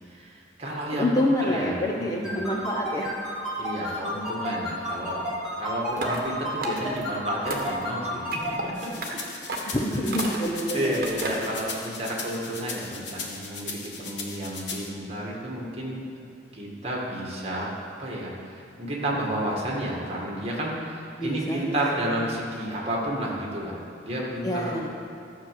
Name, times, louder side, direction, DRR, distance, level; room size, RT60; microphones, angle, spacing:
voice 1, 0.1-2.4 3.6-5.3 5.6-8.7 10.7-16.0 16.5-17.7 18.0-24.8, right 1 dB, 30° right, -3 dB, 2.1 m, -31 dB
voice 2, 0.9-3.1 9.7-11.0 21.2-21.8 22.2-22.3 24.4-24.9, left 1 dB, 20° left, -1 dB, 0.8 m, -27 dB
sound 1, 2.2-8.5, equal, ahead, 3.4 m, -31 dB
sound 2, 5.9-6.3 6.6-7.1 7.5-7.8 8.3-8.6 9.0-9.1 9.5-9.8 10.1-10.6 11.0-11.5, right 2 dB, 50° right, 1.4 m, -33 dB
sound 3, 8.7-14.9, left 4 dB, 65° left, 1.5 m, -37 dB
13.0 x 6.4 x 7.7 m, 2.5 s
head